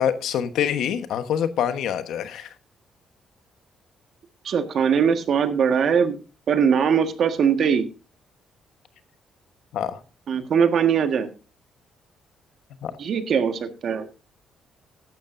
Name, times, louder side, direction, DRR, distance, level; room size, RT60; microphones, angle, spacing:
voice 1, 0.0-2.5 9.7-10.0 12.8-12.9, left 9 dB, 80° left, 1.1 m, -25 dB
voice 2, 4.4-6.2 6.5-7.9 10.3-11.3 13.0-14.1, right 7 dB, 60° right, 1.6 m, -21 dB
15.0 x 11.5 x 2.6 m
cardioid pair, 90°, 0 cm